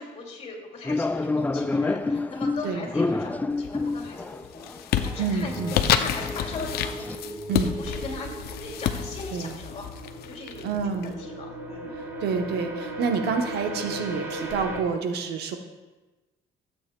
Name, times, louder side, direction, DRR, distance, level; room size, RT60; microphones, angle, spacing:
voice 1, 0.0-4.7 5.0-7.0 7.8-9.9 10.3-10.7 11.0-12.0, left 3 dB, 40° left, -1 dB, 2.6 m, -39 dB
sound 1, 0.8-7.2, left 3 dB, 10° left, 0.3 m, -29 dB
voice 2, 2.6-3.1 5.2-5.8 7.5-7.8 9.3-9.6 10.6-11.1 11.9-15.6, right 5 dB, 75° right, 5 dB, 1.0 m, -28 dB
sound 2, 3.6-4.0 4.4-11.0, left 9 dB, 65° left, 0.6 m, -29 dB
sound 3, 5.4-14.8, right 1 dB, 10° right, 1.3 m, -37 dB
15.5 x 8.4 x 2.3 m, 1.2 s
cardioid pair, 110°, 17 cm